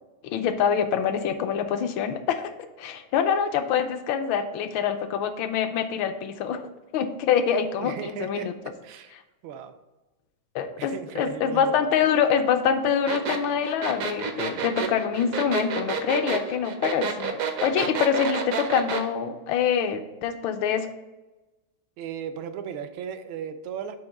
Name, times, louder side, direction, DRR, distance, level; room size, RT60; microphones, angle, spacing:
voice 1, 0.2-6.6 6.9-8.5 10.5-20.9, left 7 dB, 75° left, 8 dB, 1.3 m, -25 dB
voice 2, 7.8-8.5 8.8-9.1 9.4-9.7 10.8-11.9 22.0-24.0, right 8 dB, 85° right, 8 dB, 1.4 m, -36 dB
sound 1, 13.1-19.1, right 6 dB, 65° right, 0.8 m, -29 dB
7.1 x 2.9 x 5.1 m, 1.1 s
omnidirectional pair, 2.2 m